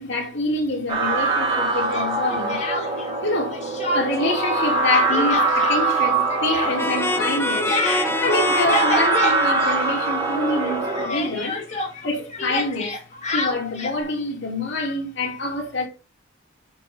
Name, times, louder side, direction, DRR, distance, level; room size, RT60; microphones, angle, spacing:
voice 1, 0.0-2.6 3.2-3.6 3.9-7.7 8.2-11.6 12.0-13.0 13.3-15.9, left 2 dB, 65° left, 2.8 m, -26 dB
sound 1, 0.9-11.1, right 3 dB, 25° right, 2.3 m, -23 dB
Speech, 1.9-3.2 3.5-4.4 4.6-10.3 10.6-14.0, left 2 dB, 40° left, 2.2 m, -29 dB
sound 2, 6.8-11.4, left 2 dB, 10° left, 1.0 m, -27 dB
8.3 x 4.9 x 5.0 m
head